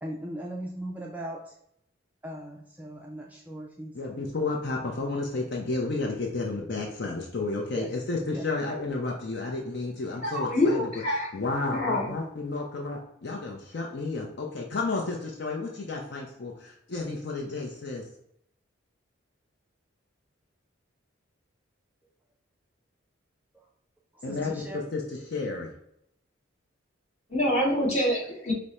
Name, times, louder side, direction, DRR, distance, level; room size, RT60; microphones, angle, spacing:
voice 1, 0.0-1.6 2.2-3.9 7.8-7.9 8.3-8.5 23.5-23.7 24.1-24.8, right 1 dB, 10° right, -1 dB, 0.3 m, -38 dB
voice 2, 3.9-10.8 11.3-18.0 24.2-25.7, left 3 dB, 55° left, 0 dB, 0.6 m, -32 dB
voice 3, 10.2-11.3 11.7-12.1 27.3-28.5, left 1 dB, 30° left, -6 dB, 1.5 m, -26 dB
5.0 x 2.1 x 4.1 m, 0.76 s
head